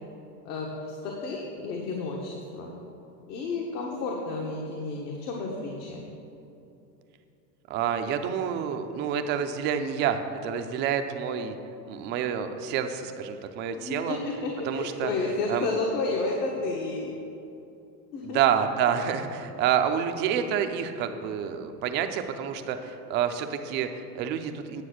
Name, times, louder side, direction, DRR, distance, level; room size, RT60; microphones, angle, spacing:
voice 1, 0.4-2.7 3.3-6.0 13.7-17.1 18.1-18.4, left 3 dB, 60° left, -1 dB, 1.6 m, -31 dB
voice 2, 7.7-11.6 11.9-14.2 14.7-15.1 15.5-15.7 18.2-24.8, right 8 dB, 25° right, 7 dB, 0.4 m, -28 dB
9.9 x 6.7 x 6.4 m, 2.8 s
hypercardioid pair, 125°, 50 cm